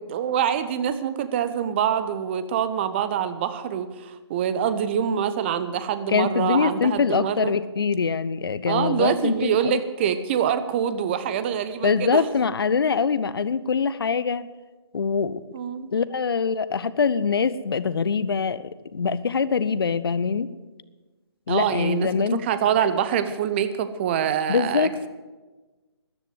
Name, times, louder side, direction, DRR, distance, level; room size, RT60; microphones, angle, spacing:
voice 1, 0.1-7.5 8.7-12.3 15.5-15.9 21.5-24.9, right 9 dB, 25° right, 12 dB, 0.8 m, -25 dB
voice 2, 6.1-9.8 11.8-14.4 14.9-15.4 15.9-20.5 21.5-22.4 24.5-25.1, left 5 dB, 60° left, 16 dB, 0.7 m, -23 dB
13.5 x 11.0 x 7.8 m, 1.2 s
figure-of-eight pair, 145°, 14 cm